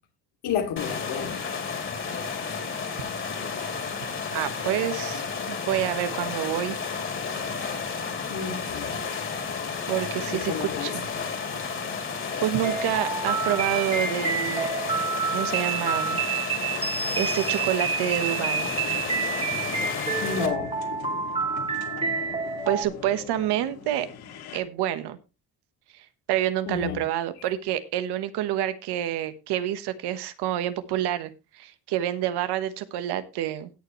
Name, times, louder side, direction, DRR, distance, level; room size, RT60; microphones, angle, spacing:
voice 1, 0.4-1.4 8.3-9.0 10.2-10.9 20.2-20.7 26.7-27.0, left 7 dB, 85° left, 2.7 m, -30 dB
sound 1, 0.8-20.5, left 5 dB, 30° left, 2.9 m, -32 dB
voice 2, 4.3-6.8 7.7-7.8 9.9-10.5 10.8-11.1 12.4-14.7 15.3-16.2 17.1-18.7 22.7-24.1 24.5-25.2 25.9-33.7, right 12 dB, 85° right, 1.3 m, -28 dB
sound 2, 12.6-22.8, right 5 dB, 15° right, 1.7 m, -28 dB
sound 3, 18.5-24.6, left 8 dB, 65° left, 2.5 m, -40 dB
17.5 x 7.0 x 3.1 m
cardioid pair, 150°, 39 cm